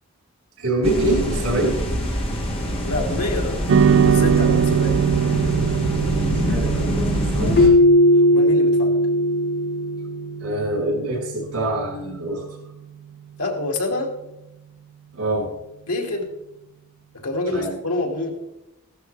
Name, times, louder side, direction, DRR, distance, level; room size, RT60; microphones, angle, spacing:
voice 1, 0.6-1.8 6.5-7.7 10.4-12.4 15.1-15.5 17.5-17.7, right 1 dB, 85° right, -2 dB, 5.6 m, -24 dB
sound 1, 0.8-7.7, equal, 25° left, 2.1 m, -25 dB
voice 2, 2.8-3.6 3.9-5.0 8.1-8.9 13.4-14.1 15.9-16.3 17.1-18.3, left 2 dB, 85° left, 0 dB, 2.5 m, -27 dB
sound 2, 3.7-12.2, right 8 dB, 55° right, 0.4 m, -23 dB
Keyboard (musical), 7.6-10.4, left 1 dB, 45° left, 0.6 m, -17 dB
15.5 x 11.5 x 3.4 m, 0.91 s
head